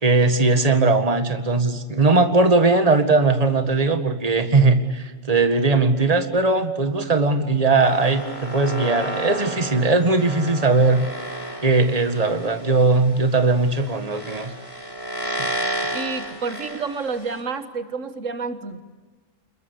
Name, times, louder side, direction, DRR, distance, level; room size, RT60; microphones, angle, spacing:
voice 1, 0.0-11.0 11.6-14.5, right 3 dB, 30° right, 8 dB, 1.9 m, -19 dB
sound 1, 7.8-17.4, right 1 dB, 50° left, 5.4 m, -32 dB
voice 2, 15.9-18.8, right 4 dB, 80° right, 10 dB, 1.7 m, -29 dB
28.0 x 21.5 x 8.4 m, 1.3 s
omnidirectional pair, 1.3 m